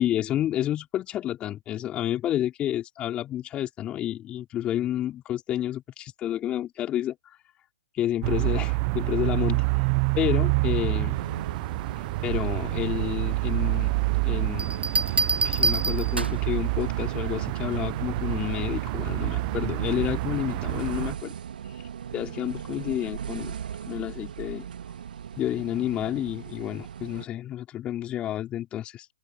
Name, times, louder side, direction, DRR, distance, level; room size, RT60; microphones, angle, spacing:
voice 1, 0.0-7.2 7.9-9.6 10.1-11.2 12.2-14.0 14.2-14.8 15.4-21.3 22.1-23.6 23.9-24.7 25.4-29.1, left 12 dB, 20° left, 4.2 m, -30 dB
sound 1, 8.2-21.1, right 30 dB, 30° right, 0.8 m, -27 dB
sound 2, 11.1-27.3, right 8 dB, 60° right, 2.4 m, -37 dB
Bell, 14.6-16.5 18.2-18.5, right 3 dB, 90° right, 0.6 m, -26 dB
open air
figure-of-eight pair, 130°, 6 cm